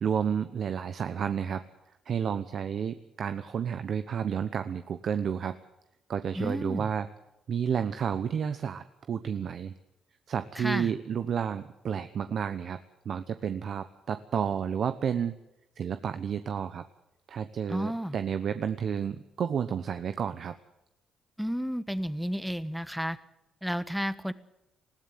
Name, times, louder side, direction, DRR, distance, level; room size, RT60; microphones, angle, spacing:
voice 1, 0.0-1.6 2.1-5.6 6.1-7.1 7.5-9.7 10.3-12.8 13.0-15.3 15.8-16.8 17.3-20.6, right 7 dB, 60° right, 10 dB, 1.0 m, -31 dB
voice 2, 6.3-6.9 10.5-10.9 17.7-18.2 21.4-23.2 23.6-24.3, equal, ahead, 14 dB, 1.2 m, -32 dB
20.5 x 15.0 x 9.2 m, 0.89 s
cardioid pair, 90°, 0 cm